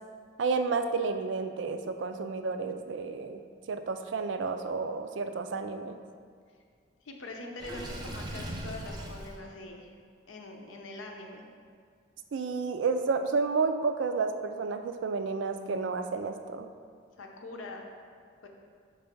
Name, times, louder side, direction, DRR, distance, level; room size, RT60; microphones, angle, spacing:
voice 1, 0.4-3.4 3.7-6.0 12.3-16.7, right 4 dB, 70° right, 8 dB, 0.4 m, -31 dB
voice 2, 7.0-9.9 10.3-11.4 17.2-17.8 18.4-18.5, left 2 dB, 85° left, 2 dB, 0.7 m, -43 dB
Water / Sink (filling or washing), 7.6-9.4, right 1 dB, 20° right, 0.6 m, -39 dB
5.3 x 3.4 x 5.2 m, 2.1 s
head